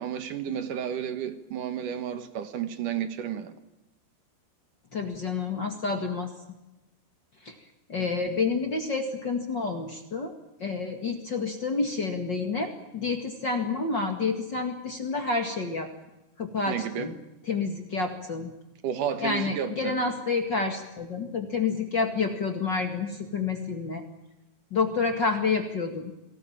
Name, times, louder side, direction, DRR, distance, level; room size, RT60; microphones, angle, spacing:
voice 1, 0.0-3.5 16.7-17.1 18.8-20.0, right 9 dB, 60° right, 2.3 m, -32 dB
voice 2, 4.9-6.3 7.4-7.5 7.9-10.3 10.6-15.9 16.4-17.1 17.5-18.5 19.2-24.0 24.7-26.1, left 4 dB, 50° left, 1.4 m, -29 dB
26.5 x 18.5 x 8.8 m
omnidirectional pair, 5.3 m